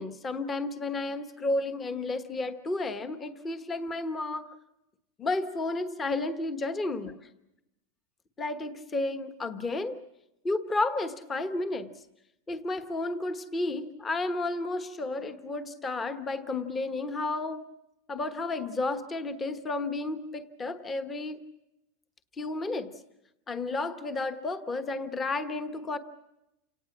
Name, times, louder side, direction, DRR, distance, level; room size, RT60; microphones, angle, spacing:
voice 1, 0.0-4.5 5.2-7.2 8.4-10.0 10.4-11.9 12.5-17.6 18.1-21.4 22.4-22.9 23.5-26.0, left 2 dB, 15° left, 10 dB, 1.2 m, -32 dB
29.0 x 18.5 x 7.3 m, 0.89 s
supercardioid pair, 170°, 0 cm